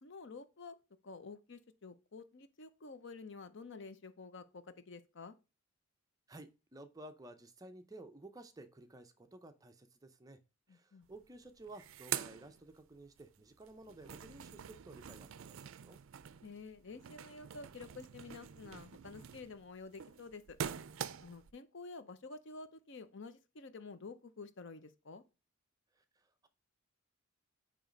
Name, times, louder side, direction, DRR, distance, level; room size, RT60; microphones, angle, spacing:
voice 1, 0.0-0.8 1.0-5.3 10.7-11.1 16.4-20.6 21.2-25.2, left 4 dB, 55° left, 0.7 m, -50 dB
voice 2, 6.3-10.4 10.7-16.0 26.0-26.5, right 2 dB, 15° right, 0.6 m, -54 dB
sound 1, 11.1-11.2 11.5-13.2 13.6-21.5, right 9 dB, 65° right, 0.4 m, -45 dB
9.0 x 3.1 x 5.1 m
head